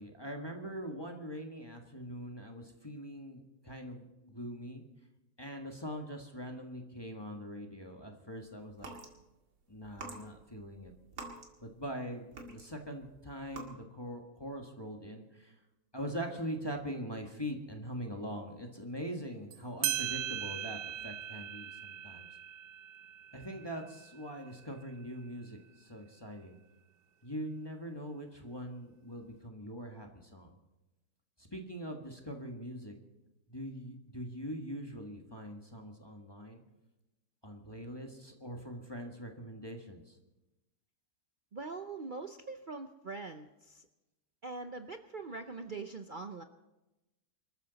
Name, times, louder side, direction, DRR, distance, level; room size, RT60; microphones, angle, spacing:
voice 1, 0.0-4.8 5.4-8.9 9.7-10.9 11.6-15.5 15.9-22.3 23.3-26.6 27.2-30.6 31.4-32.9 33.5-36.6 37.4-40.2, equal, 15° left, 2 dB, 1.6 m, -42 dB
sound 1, 8.7-9.1 9.8-12.0 12.3-12.9 13.4-13.6, right 3 dB, 90° right, 2.8 m, -46 dB
sound 2, 19.5-19.6 19.8-24.9, right 12 dB, 75° right, 1.3 m, -39 dB
voice 2, 41.5-43.9 44.4-46.4, right 3 dB, 50° right, 7 dB, 0.6 m, -43 dB
25.0 x 14.0 x 4.1 m, 1.0 s
omnidirectional pair, 1.7 m